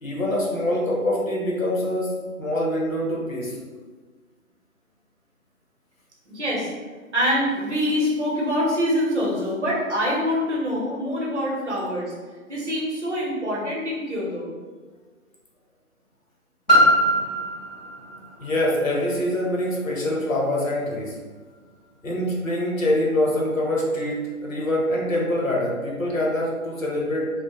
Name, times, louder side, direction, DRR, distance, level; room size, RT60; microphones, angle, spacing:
voice 1, 0.0-2.1 2.4-3.5 18.4-21.2 22.0-27.3, left 1 dB, 65° left, -3 dB, 0.8 m, -24 dB
voice 2, 6.3-6.7 7.1-12.1 12.5-14.5, equal, 50° right, -5 dB, 0.7 m, -25 dB
Piano, 16.7-22.1 22.8-22.9, equal, 30° left, 0.5 m, -24 dB
2.2 x 2.0 x 2.9 m, 1.4 s
figure-of-eight pair, 150°, 44 cm